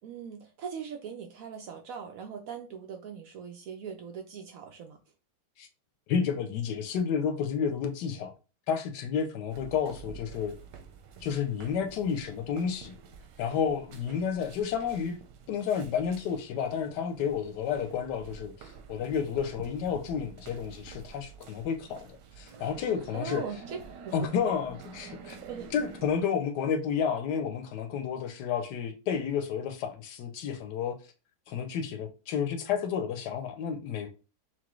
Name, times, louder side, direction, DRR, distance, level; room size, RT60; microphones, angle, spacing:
voice 1, 0.0-5.0 23.1-23.8 24.0-24.5 25.4-25.7, right 6 dB, 70° right, 0.9 m, -40 dB
voice 2, 6.1-8.3 8.7-10.5 11.2-13.0 13.4-15.2 15.5-23.4 24.1-25.4 25.7-31.0 31.5-34.1, left 7 dB, 75° left, 1.2 m, -31 dB
sound 1, 9.5-26.2, right 6 dB, 90° right, 1.3 m, -48 dB
5.9 x 2.2 x 3.0 m
omnidirectional pair, 1.8 m